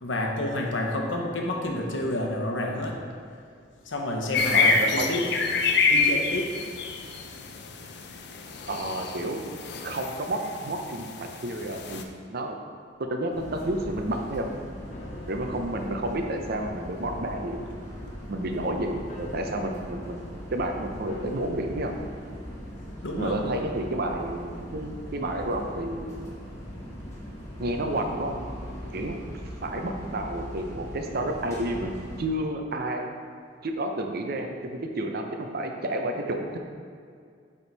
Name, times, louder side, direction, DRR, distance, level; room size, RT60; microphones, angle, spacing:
voice 1, 0.0-3.0 3.8-5.2 5.9-6.6 23.0-23.4, left 1 dB, 80° left, 1 dB, 0.9 m, -29 dB
sound 1, 4.3-12.0, left 4 dB, 60° left, 0.5 m, -27 dB
voice 2, 4.5-5.5 8.7-9.4 9.8-12.0 12.3-12.6 13.1-14.5 15.3-17.7 18.3-21.9 23.2-26.1 27.6-28.4 28.9-29.1 29.6-31.9 32.2-33.1 33.6-36.6, right 1 dB, 55° right, 3 dB, 0.7 m, -30 dB
sound 2, 13.3-32.2, equal, 15° left, 1.6 m, -40 dB
sound 3, 14.9-30.2 30.6-30.7, left 1 dB, 40° left, 0.9 m, -48 dB
9.1 x 3.6 x 4.0 m, 2.2 s
head